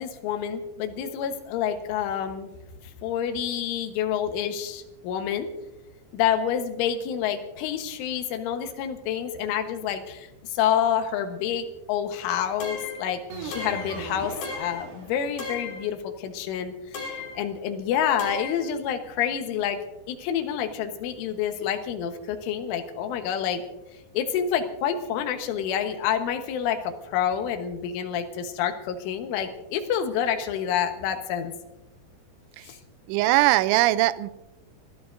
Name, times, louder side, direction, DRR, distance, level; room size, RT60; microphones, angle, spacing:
voice 1, 0.0-2.5 3.0-5.5 6.1-19.8 20.1-23.6 24.1-31.5 32.7-32.8, left 9 dB, 75° left, 6 dB, 3.6 m, -28 dB
sound 1, 12.6-13.1 13.5-14.0 14.4-14.9 15.4-15.8 16.9-17.4 18.2-18.6, left 4 dB, 50° left, 4.8 m, -35 dB
sound 2, 13.3-15.6, right 3 dB, 50° right, 3.9 m, -39 dB
voice 2, 33.1-34.3, right 17 dB, 85° right, 15 dB, 2.7 m, -20 dB
30.0 x 14.0 x 2.6 m, 0.97 s
omnidirectional pair, 5.7 m